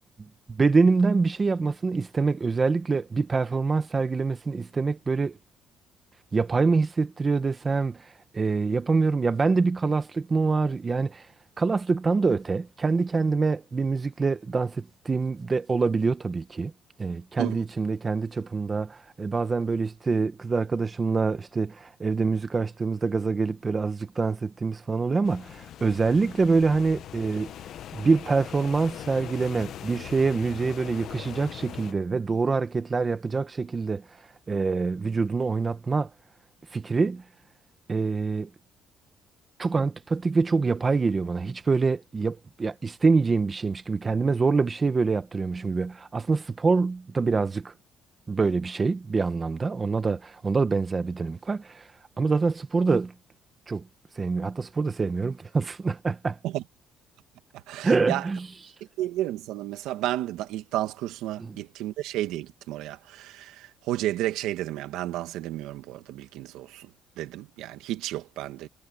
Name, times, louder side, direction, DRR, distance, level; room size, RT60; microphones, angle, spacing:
voice 1, 0.5-5.4 6.3-11.3 11.6-16.7 17.0-27.5 27.9-34.0 34.5-36.1 36.7-37.2 37.9-38.5 39.6-47.7 48.3-51.9 52.2-53.1 53.7-53.8 54.2-56.4 57.8-58.4 61.4-61.6, right 4 dB, 20° right, 1.0 m, -25 dB
sound 1, 25.2-31.9, left 11 dB, 50° left, 0.7 m, -41 dB
voice 2, 57.5-58.3 59.0-68.7, right 14 dB, 85° right, 1.9 m, -32 dB
cardioid pair, 170°, 0 cm